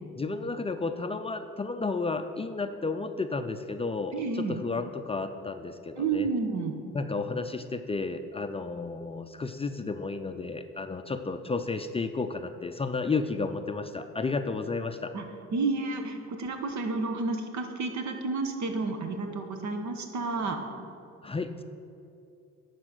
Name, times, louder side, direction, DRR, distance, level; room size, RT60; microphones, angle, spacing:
voice 1, 0.2-6.3 6.9-15.1 21.2-21.6, left 3 dB, 20° left, 7 dB, 0.4 m, -32 dB
voice 2, 4.1-4.6 6.0-6.8 15.1-15.2 15.5-20.6, right 3 dB, 70° right, 5 dB, 1.1 m, -30 dB
11.0 x 4.2 x 6.5 m, 2.6 s
cardioid pair, 90°, 30 cm